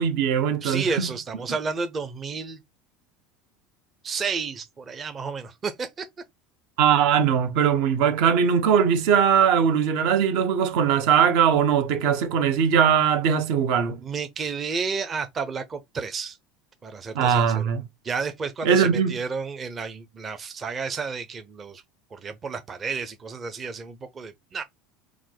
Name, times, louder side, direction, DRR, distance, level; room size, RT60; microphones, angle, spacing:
voice 1, 0.0-1.1 6.8-14.0 17.1-17.8 18.6-19.1, right 7 dB, 70° right, 0.9 m, -20 dB
voice 2, 0.6-2.6 4.0-6.1 14.0-16.4 16.8-17.7 18.0-21.8 22.1-24.6, right 5 dB, 25° right, 0.6 m, -31 dB
4.6 x 2.1 x 3.7 m
supercardioid pair, 130°, 0 cm